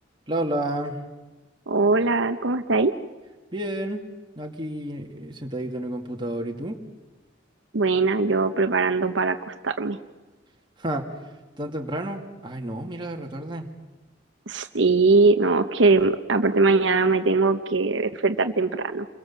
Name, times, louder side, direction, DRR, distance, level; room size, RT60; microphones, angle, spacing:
voice 1, 0.3-1.0 3.5-4.0 4.4-6.8 10.8-11.1 11.6-13.7, right 1 dB, 25° right, 2 dB, 2.5 m, -30 dB
voice 2, 1.7-2.9 7.7-10.0 14.5-19.1, right 3 dB, 75° right, 8 dB, 0.9 m, -21 dB
29.0 x 22.0 x 7.5 m, 1.2 s
head